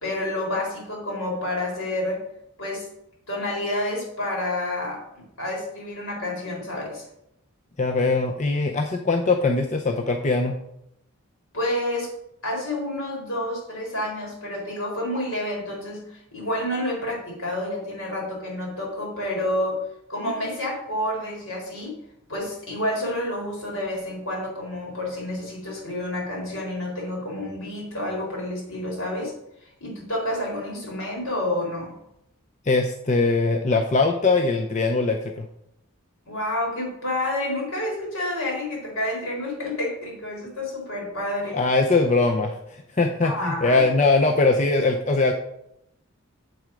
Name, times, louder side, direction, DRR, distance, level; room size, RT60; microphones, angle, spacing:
voice 1, 0.0-2.2 2.6-2.9 3.3-7.1 11.5-12.1 12.4-19.8 20.1-21.9 22.3-29.3 29.8-32.0 36.3-41.6 43.2-43.8, left 1 dB, 65° left, -2 dB, 4.1 m, -29 dB
voice 2, 7.8-10.5 32.6-35.5 41.5-45.3, left 3 dB, 30° left, 3 dB, 0.6 m, -21 dB
7.9 x 7.7 x 5.2 m, 0.79 s
head